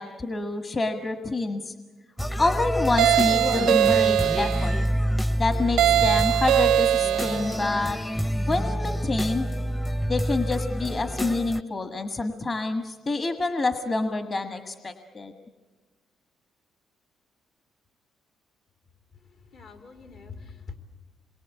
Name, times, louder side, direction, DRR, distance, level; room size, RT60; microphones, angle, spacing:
voice 1, 0.0-1.7 2.4-4.8 5.4-8.0 8.4-9.5 10.1-15.3, left 2 dB, 35° left, 6 dB, 1.6 m, -27 dB
sound 1, 2.2-11.6, equal, 10° left, 0.8 m, -27 dB
sound 2, 3.0-4.7 5.8-7.5, right 12 dB, 90° right, 0.8 m, -21 dB
voice 2, 19.1-20.8, left 5 dB, 70° left, 4 dB, 3.5 m, -44 dB
28.0 x 22.5 x 8.3 m, 1.3 s
cardioid pair, 90°, 0 cm